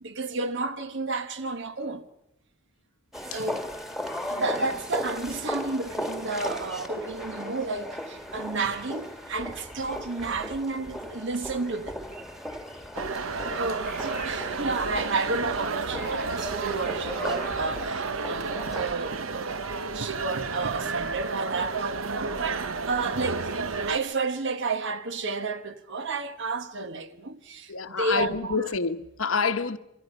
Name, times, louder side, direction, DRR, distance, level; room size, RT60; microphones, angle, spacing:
voice 1, 0.0-2.1 3.3-3.7 4.3-12.0 13.5-19.5 19.9-28.6, right 3 dB, 60° right, 1.2 m, -31 dB
sound 1, 3.1-18.9, equal, ahead, 1.7 m, -37 dB
sound 2, 12.9-24.0, right 4 dB, 80° right, 1.0 m, -32 dB
voice 2, 27.7-29.8, left 5 dB, 80° left, 1.1 m, -27 dB
27.0 x 24.5 x 5.4 m
head